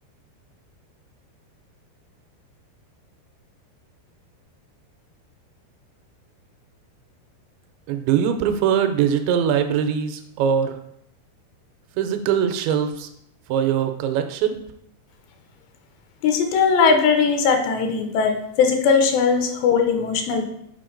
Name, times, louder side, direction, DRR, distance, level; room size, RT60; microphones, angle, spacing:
voice 1, 7.9-10.8 12.0-13.1 13.5-14.6, right 8 dB, 85° right, 7 dB, 2.8 m, -22 dB
voice 2, 16.2-20.4, left 5 dB, 80° left, 5 dB, 2.7 m, -19 dB
7.6 x 4.8 x 3.8 m, 0.75 s
omnidirectional pair, 5.2 m